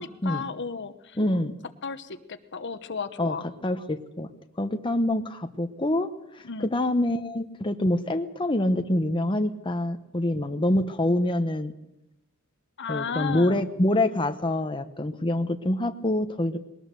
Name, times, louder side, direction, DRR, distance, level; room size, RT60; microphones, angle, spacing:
voice 1, 0.0-1.2 1.8-3.5 6.4-6.7 12.8-13.6, left 5 dB, 55° left, 11 dB, 1.0 m, -34 dB
voice 2, 1.2-1.6 3.2-3.4 3.6-4.3 4.6-6.1 6.3-6.5 6.7-11.7 12.9-16.6, left 1 dB, 25° left, 7 dB, 0.9 m, -26 dB
21.0 x 19.0 x 6.8 m, 0.87 s
head